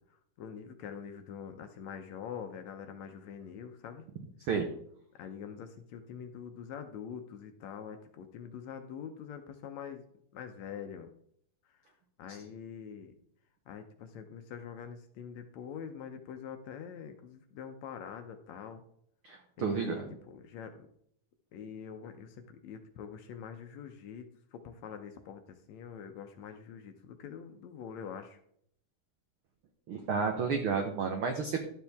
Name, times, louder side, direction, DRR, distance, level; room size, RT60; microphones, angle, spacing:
voice 1, 0.4-4.0 5.2-10.0 10.3-11.1 11.7-11.8 12.2-13.1 13.7-18.8 19.6-20.9 21.5-28.4, left 7 dB, 75° left, 6 dB, 1.8 m, -45 dB
voice 2, 19.2-20.2 29.9-31.6, right 5 dB, 85° right, 4 dB, 1.1 m, -31 dB
12.0 x 7.4 x 3.5 m, 0.69 s
omnidirectional pair, 3.7 m